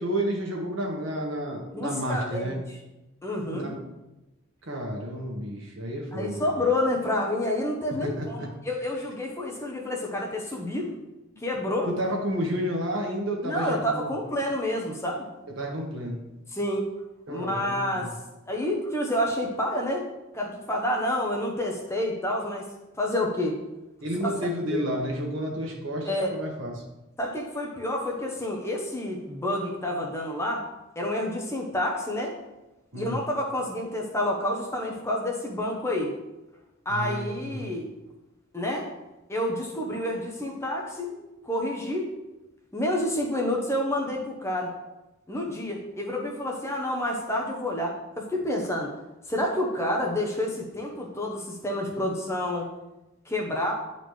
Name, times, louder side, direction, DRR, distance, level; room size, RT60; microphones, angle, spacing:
voice 1, 0.0-2.6 3.5-3.8 4.7-6.5 8.0-8.5 11.8-14.1 15.6-16.2 17.3-18.1 24.0-26.7 32.9-33.2 36.9-37.7, equal, 70° right, 0 dB, 1.4 m, -31 dB
voice 2, 1.7-2.8 3.2-3.7 6.1-10.9 11.4-11.9 13.4-15.3 16.5-16.9 17.3-18.2 18.5-20.1 20.3-22.7 23.0-23.6 24.2-24.3 24.7-24.8 26.0-26.4 27.2-30.7 31.0-32.4 32.9-36.1 36.8-37.8 38.5-38.9 39.3-41.2 41.4-42.1 42.7-44.7 45.3-48.9 49.3-52.7 53.3-53.7, left 1 dB, 15° left, 0 dB, 0.8 m, -29 dB
9.8 x 4.1 x 3.2 m, 1.0 s
head